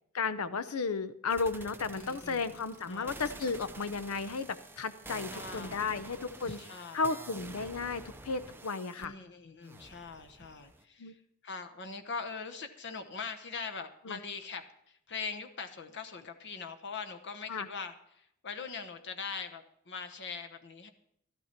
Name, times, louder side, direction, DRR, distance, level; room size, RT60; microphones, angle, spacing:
voice 1, 0.1-6.6 6.9-9.1 11.0-11.1 14.1-14.2 17.5-17.7, left 4 dB, 85° left, 13 dB, 0.7 m, -34 dB
sound 1, 1.3-9.1 9.6-10.8, right 2 dB, 10° right, 0.6 m, -48 dB
voice 2, 1.9-2.6 2.8-3.2 5.3-6.1 6.4-7.3 9.0-20.9, left 5 dB, 55° left, 6 dB, 1.0 m, -42 dB
13.0 x 11.5 x 4.4 m, 0.74 s
head